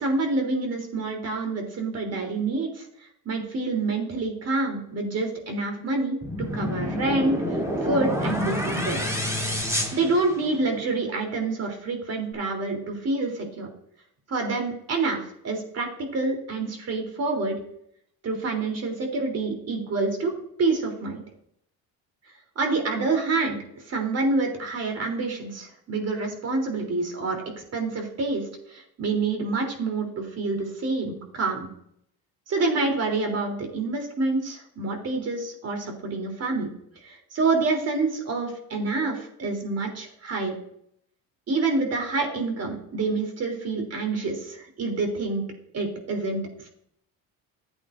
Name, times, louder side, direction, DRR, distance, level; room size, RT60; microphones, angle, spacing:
voice 1, 0.0-9.2 9.9-13.7 14.3-15.9 16.1-17.6 18.2-20.3 20.6-21.2 22.6-23.6 23.9-27.4 27.7-28.4 28.7-31.7 32.5-36.7 37.0-40.5 41.5-45.4 45.7-46.7, right 3 dB, 45° right, 3 dB, 3.4 m, -27 dB
sound 1, 6.2-10.8, equal, 10° right, 3.0 m, -28 dB
14.5 x 8.6 x 2.6 m, 0.71 s
supercardioid pair, 100°, 35 cm